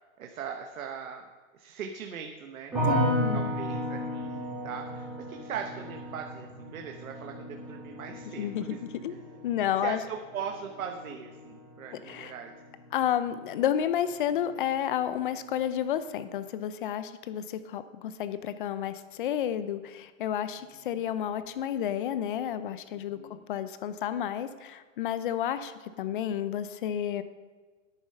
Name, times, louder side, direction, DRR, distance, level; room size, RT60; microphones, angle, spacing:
voice 1, 0.2-1.3 1.5-8.8 9.1-9.2 9.8-12.5 22.9-23.4, right 7 dB, 90° right, 3 dB, 1.2 m, -40 dB
sound 1, 2.7-13.8 14.1-14.8, right 1 dB, 5° right, 3.7 m, -35 dB
voice 2, 2.9-3.5 8.4-9.1 9.4-10.0 12.0-12.3 12.9-23.2 23.5-27.2, left 10 dB, 40° left, 13 dB, 0.6 m, -31 dB
10.0 x 9.0 x 5.6 m, 1.4 s
hypercardioid pair, 160°, 40 cm